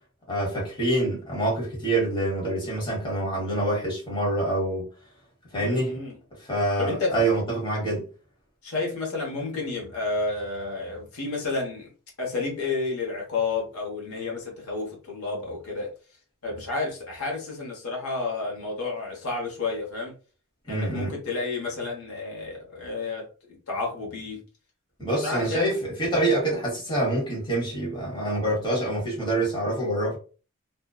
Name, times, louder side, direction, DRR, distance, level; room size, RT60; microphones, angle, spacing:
voice 1, 0.3-4.9 5.5-6.0 6.5-8.0 20.7-21.1 25.0-30.2, right 1 dB, 20° left, 1.0 m, -26 dB
voice 2, 5.5-6.2 6.8-7.1 8.6-11.9 12.2-15.9 16.4-20.1 20.7-24.4 25.1-25.8, left 3 dB, 75° left, 0.9 m, -31 dB
2.6 x 2.2 x 2.2 m
head